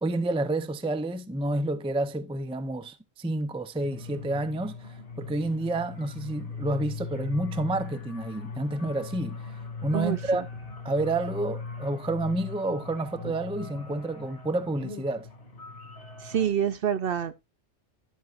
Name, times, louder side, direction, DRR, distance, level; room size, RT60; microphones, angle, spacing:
voice 1, 0.0-9.5 9.8-10.4 10.8-15.3, right 2 dB, 10° right, 0.4 m, -29 dB
sound 1, 3.8-16.5, left 4 dB, 50° left, 2.1 m, -40 dB
voice 2, 9.9-10.4 16.2-17.3, right 9 dB, 60° right, 0.7 m, -27 dB
11.0 x 7.7 x 2.5 m
omnidirectional pair, 1.2 m